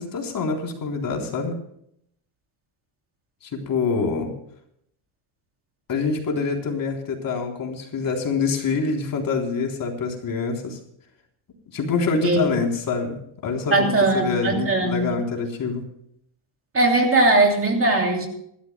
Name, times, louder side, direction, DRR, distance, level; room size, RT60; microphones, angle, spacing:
voice 1, 0.0-1.5 3.4-4.3 5.9-10.8 11.7-15.8, left 4 dB, 45° left, 1 dB, 3.9 m, -26 dB
voice 2, 13.7-15.0 16.7-18.3, right 2 dB, 25° right, 2 dB, 3.0 m, -19 dB
27.0 x 13.0 x 2.3 m, 0.71 s
cardioid pair, 150°, 48 cm